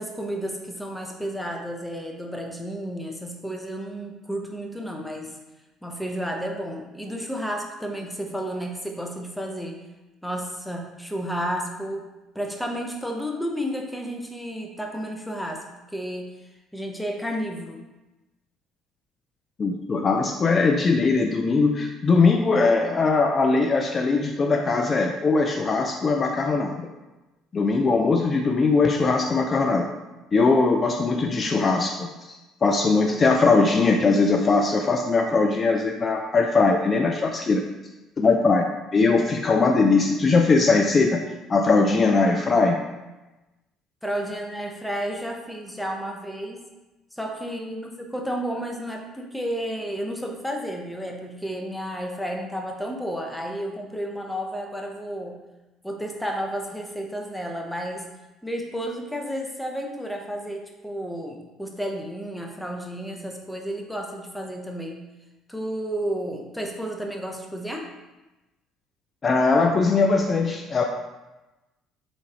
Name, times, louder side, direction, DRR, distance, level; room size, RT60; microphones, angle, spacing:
voice 1, 0.0-5.3 5.8-9.8 10.2-12.1 12.3-16.3 16.7-17.8 44.0-46.6 47.1-55.4 55.8-58.0 58.4-65.0 65.5-67.9, equal, 5° left, 2 dB, 0.8 m, -32 dB
voice 2, 19.6-26.9 27.5-29.9 30.3-37.6 38.2-38.7 38.9-41.2 41.5-42.8 69.2-70.8, left 3 dB, 35° left, 3 dB, 0.4 m, -20 dB
3.8 x 3.4 x 3.8 m, 1.1 s
supercardioid pair, 75°, 0 cm